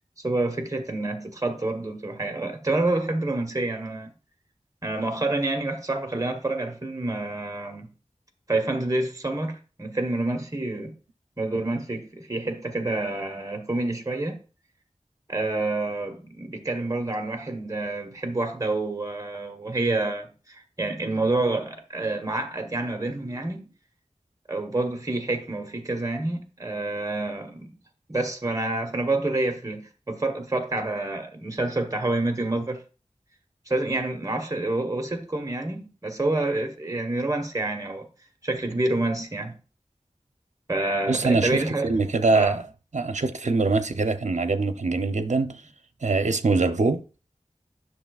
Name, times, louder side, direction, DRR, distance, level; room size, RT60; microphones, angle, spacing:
voice 1, 0.2-4.1 4.8-7.9 8.5-10.9 11.4-14.4 15.3-23.7 24.5-27.7 28.1-32.8 33.7-38.1 38.4-39.6 40.7-41.9 42.3-42.6, right 2 dB, 30° right, 1.3 m, -28 dB
voice 2, 41.1-42.7 42.9-45.6 46.0-47.0, right 3 dB, 75° right, 0.7 m, -23 dB
11.0 x 6.3 x 2.4 m
wide cardioid pair, 50°, 12 cm